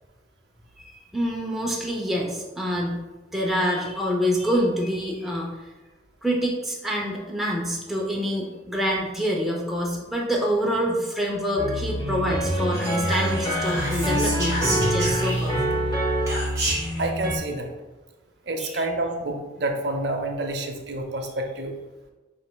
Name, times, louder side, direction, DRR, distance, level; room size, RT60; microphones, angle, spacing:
voice 1, 0.8-3.0 3.3-5.7 6.2-15.8 18.6-18.8, equal, ahead, -3 dB, 0.5 m, -26 dB
sound 1, 11.6-17.4, right 1 dB, 20° left, 0.8 m, -26 dB
Whispering, 12.7-15.7 16.3-17.0, right 1 dB, 20° right, 1.4 m, -30 dB
voice 2, 17.0-17.7 18.5-21.8, right 2 dB, 60° right, 3 dB, 0.6 m, -28 dB
6.2 x 3.3 x 2.2 m, 1.2 s
head